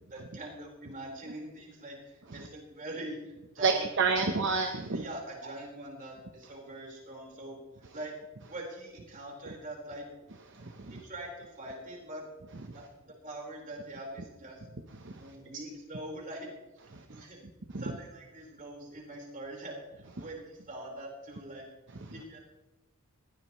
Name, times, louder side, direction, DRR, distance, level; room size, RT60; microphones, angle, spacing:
voice 1, 0.1-4.2 4.9-7.6 7.9-8.2 8.5-10.1 10.9-12.3 12.7-14.6 15.2-16.5 17.1-17.4 17.8-21.7 22.1-22.4, right 1 dB, 40° right, -1 dB, 4.7 m, -43 dB
voice 2, 3.6-5.0 10.6-11.0 15.0-15.1 17.7-17.8, right 4 dB, 60° right, 5 dB, 1.0 m, -29 dB
20.0 x 16.0 x 3.2 m, 1.0 s
head